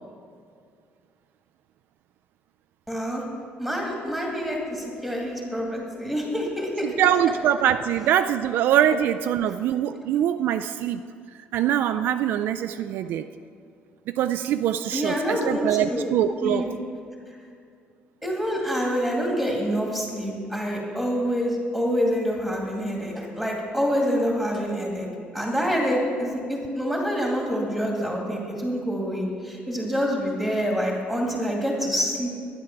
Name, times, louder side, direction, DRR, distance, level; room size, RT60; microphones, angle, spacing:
voice 1, 2.9-3.2 3.6-6.9 14.9-16.0 16.4-16.7 17.3-17.4 18.2-25.1 25.3-32.3, equal, ahead, -2 dB, 2.1 m, -26 dB
voice 2, 6.8-11.0 11.5-13.3 14.1-16.7, right 10 dB, 60° right, 8 dB, 0.3 m, -23 dB
11.5 x 10.0 x 5.9 m, 2.3 s
cardioid pair, 180°, 4 cm